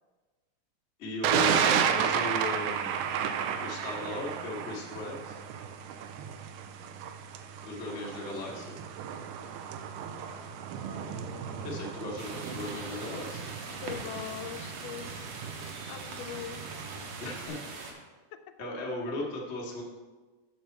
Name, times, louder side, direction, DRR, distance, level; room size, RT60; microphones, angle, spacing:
voice 1, 1.0-3.0 3.6-5.4 7.6-8.8 11.6-13.5 17.2-17.6 18.6-19.8, left 2 dB, 45° left, -3 dB, 0.8 m, -37 dB
Thunder, 1.2-17.5, right 8 dB, 85° right, 2.1 m, -33 dB
voice 2, 9.9-12.6 13.8-15.2 15.9-16.6, left 10 dB, 85° left, 9 dB, 2.1 m, -44 dB
sound 1, 12.2-17.9, right 3 dB, 65° right, 1.9 m, -42 dB
7.2 x 6.7 x 4.5 m, 1.3 s
omnidirectional pair, 3.6 m